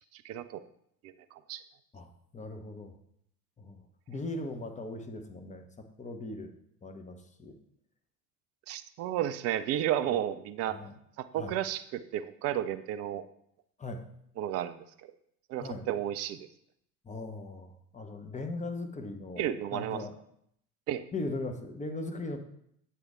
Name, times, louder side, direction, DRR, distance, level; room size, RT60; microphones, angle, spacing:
voice 1, 0.1-0.6 1.0-1.6 8.7-10.8 11.2-13.3 14.4-15.1 15.5-16.5 19.4-20.0 20.9-21.0, right 11 dB, 35° right, 12 dB, 0.4 m, -33 dB
voice 2, 1.9-2.9 3.6-3.8 4.1-6.5 6.8-7.5 10.1-10.2 10.7-10.9 11.3-11.6 13.8-14.0 15.6-15.9 17.0-20.2 21.1-22.4, left 2 dB, 15° left, 5 dB, 0.8 m, -39 dB
7.8 x 4.2 x 3.7 m, 0.71 s
figure-of-eight pair, 65°, 50 cm